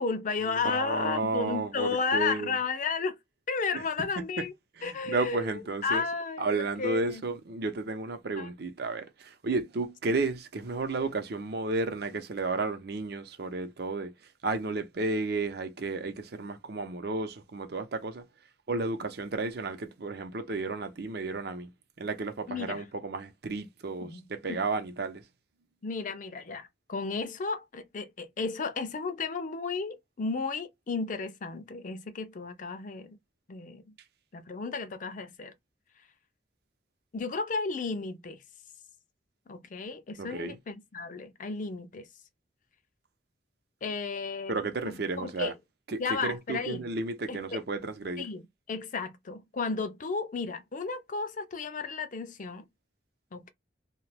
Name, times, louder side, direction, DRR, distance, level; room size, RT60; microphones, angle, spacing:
voice 1, 0.0-3.2 3.5-4.5 4.8-6.5 6.8-7.2 8.4-8.5 22.5-22.8 24.0-24.6 25.8-33.2 33.5-33.9 34.3-35.5 37.1-38.4 39.5-42.1 43.8-44.5 44.8-45.5 46.0-46.9 47.3-47.6 48.2-52.6 53.3-53.5, left 4 dB, 45° left, 0.5 m, -33 dB
voice 2, 0.6-2.6 3.7-3.8 4.2-4.3 4.8-6.0 6.4-14.1 14.4-18.2 18.7-21.7 22.0-25.2 40.2-40.6 44.5-45.5 45.9-48.3, right 3 dB, 65° right, 0.6 m, -32 dB
2.8 x 2.2 x 3.3 m
head